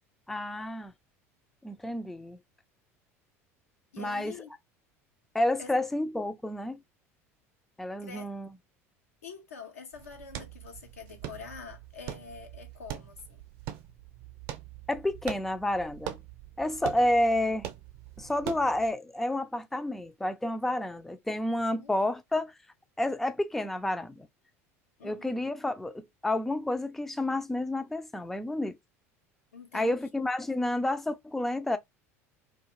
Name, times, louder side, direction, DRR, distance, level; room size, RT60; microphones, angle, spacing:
voice 1, 0.3-0.9 1.6-2.4 4.0-4.3 5.3-6.8 7.8-8.5 14.9-16.2 16.6-17.7 18.2-22.5 23.0-24.3 25.0-28.8 29.7-31.8, left 1 dB, 5° left, 0.3 m, -30 dB
voice 2, 3.9-4.5 5.6-5.7 8.0-8.3 9.2-13.4 21.7-21.9 25.0-25.4 29.5-30.0, left 5 dB, 85° left, 0.7 m, -46 dB
sound 1, 9.9-18.9, right 11 dB, 60° right, 0.6 m, -43 dB
2.4 x 2.3 x 2.9 m
hypercardioid pair, 75°, 8 cm